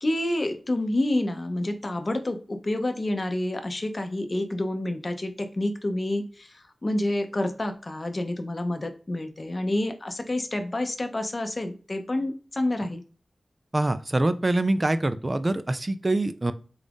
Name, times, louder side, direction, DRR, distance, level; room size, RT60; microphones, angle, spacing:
voice 1, 0.0-13.0, left 1 dB, 35° left, 6 dB, 0.6 m, -28 dB
voice 2, 13.7-16.5, right 2 dB, 30° right, 11 dB, 0.3 m, -24 dB
3.9 x 2.4 x 3.4 m, 0.38 s
wide cardioid pair, 95°, 0 cm